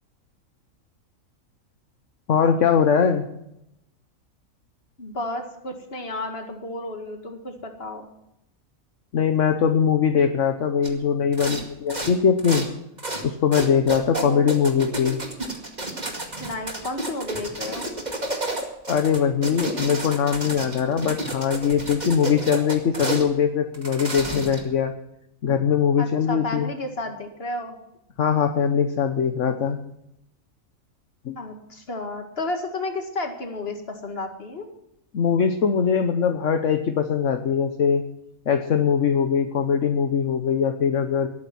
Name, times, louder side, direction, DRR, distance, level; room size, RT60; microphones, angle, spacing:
voice 1, 2.3-3.2 9.1-12.6 13.2-15.2 18.9-24.9 25.4-26.7 28.2-29.8 31.2-31.4 35.1-38.0 38.5-41.3, left 7 dB, 65° left, 6 dB, 1.3 m, -21 dB
voice 2, 5.0-8.0 14.1-14.5 16.4-17.9 26.0-27.8 31.4-34.7, left 2 dB, 45° left, 4 dB, 2.2 m, -32 dB
sound 1, 10.8-11.0 11.3-11.6 11.9-12.7 13.0-13.3 13.5-23.3 23.7-24.7, right 2 dB, 30° right, 2.3 m, -31 dB
20.0 x 9.3 x 6.0 m, 0.81 s
omnidirectional pair, 1.4 m